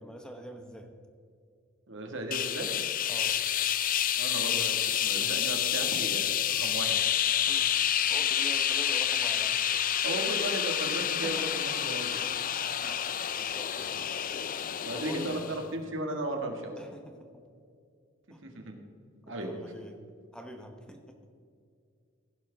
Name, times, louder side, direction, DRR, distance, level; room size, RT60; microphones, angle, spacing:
voice 1, 0.0-0.9 3.1-3.4 7.3-7.7 8.1-9.8 11.2-11.9 13.3-14.0 14.9-15.6 16.8-17.4 18.3-18.4 19.3-20.0 20.3-21.2, equal, 5° left, 4 dB, 0.9 m, -45 dB
voice 2, 1.9-2.7 4.2-7.0 10.0-12.1 12.4-12.9 14.8-16.8 18.4-18.7 19.3-19.5, right 1 dB, 65° right, 2 dB, 1.8 m, -36 dB
sound 1, 2.3-15.6, left 10 dB, 45° left, 0.5 m, -29 dB
16.0 x 11.0 x 3.5 m, 2.3 s
head